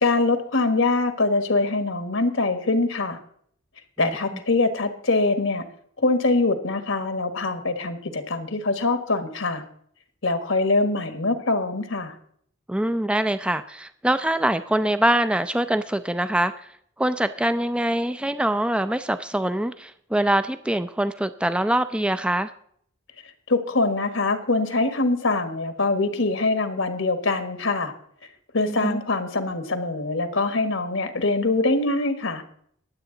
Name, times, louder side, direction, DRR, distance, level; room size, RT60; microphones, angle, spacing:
voice 1, 0.0-3.2 4.0-5.6 6.0-9.6 10.2-12.1 23.5-27.9 28.5-32.4, left 3 dB, 75° left, 9 dB, 1.4 m, -23 dB
voice 2, 12.7-16.5 17.0-22.5 28.7-29.0, right 1 dB, 5° right, 11 dB, 0.4 m, -24 dB
22.0 x 8.1 x 3.8 m, 0.64 s
head